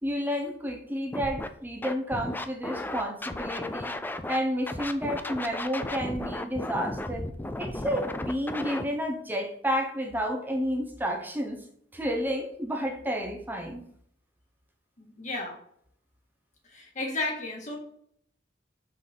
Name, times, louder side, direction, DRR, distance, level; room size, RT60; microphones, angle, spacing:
voice 1, 0.0-3.9 4.3-7.3 7.6-11.6 11.9-13.8, equal, 10° right, 2 dB, 0.7 m, -31 dB
Scratching (performance technique), 1.1-1.5 1.8-4.4 4.7-8.8, left 1 dB, 10° left, 0.4 m, -34 dB
voice 2, 15.0-15.6 16.6-17.8, left 2 dB, 40° left, -1 dB, 1.8 m, -33 dB
5.6 x 4.0 x 5.1 m, 0.67 s
head